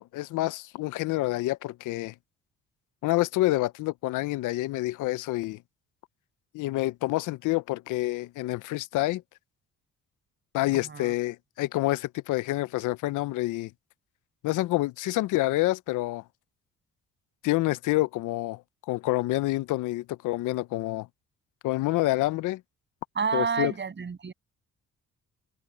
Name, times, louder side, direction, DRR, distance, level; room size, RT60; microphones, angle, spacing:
voice 1, 0.0-2.1 3.0-5.6 6.5-9.2 10.5-13.7 14.4-16.2 17.4-18.6 18.9-21.1 21.6-22.6 23.3-23.7, left 18 dB, 85° left, 0.6 m, -27 dB
voice 2, 10.7-11.2 23.2-24.3, right 5 dB, 40° right, 7.1 m, -30 dB
cardioid pair, 90°, 30 cm